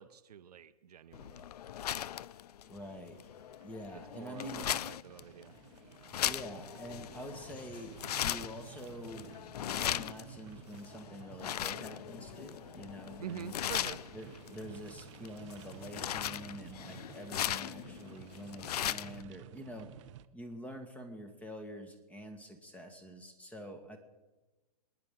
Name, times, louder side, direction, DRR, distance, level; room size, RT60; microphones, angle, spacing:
voice 1, 0.0-1.4 4.1-5.5 13.2-14.0, right 8 dB, 75° right, 10 dB, 0.9 m, -46 dB
sound 1, 1.1-19.2, left 11 dB, 75° left, 0.4 m, -39 dB
voice 2, 2.7-3.2 3.6-4.7 6.2-9.3 9.7-13.5 14.1-19.9 20.3-24.0, equal, 5° left, 7 dB, 1.5 m, -46 dB
sound 2, 2.7-20.3, right 12 dB, 50° right, 0.7 m, -54 dB
27.0 x 10.0 x 3.7 m, 1.2 s
hypercardioid pair, 120°, 20 cm